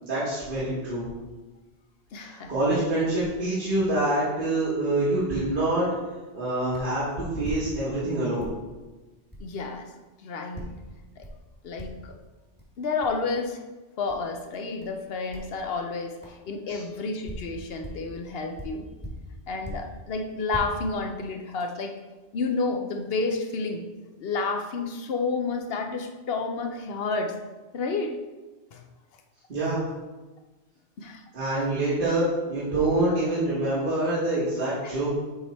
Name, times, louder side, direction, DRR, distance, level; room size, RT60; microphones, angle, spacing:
voice 1, 0.0-1.1 2.2-5.9 6.3-8.5 16.7-16.8 29.5-29.8 31.3-35.1, right 1 dB, 45° right, -9 dB, 1.5 m, -26 dB
voice 2, 2.1-2.8 9.4-9.9 10.2-10.7 11.2-11.3 11.6-12.1 12.8-13.6 14.0-18.9 19.5-22.0 22.3-23.8 24.2-27.4 27.7-28.2 28.7-28.8 31.0-31.2 34.8-34.9, left 4 dB, 60° left, 4 dB, 0.9 m, -30 dB
sound 1, 6.7-7.0 7.4-8.1 8.4-8.6 9.3-9.5 10.5-10.8 11.2-11.5 11.8-12.1 12.6-12.7 13.0-13.2 14.1-14.2 14.8-15.0 15.3-15.5 16.2-16.4 17.0-18.1 18.5-20.0 20.3-20.6, equal, 10° left, 1.4 m, -40 dB
7.1 x 3.5 x 4.2 m, 1.2 s
omnidirectional pair, 1.2 m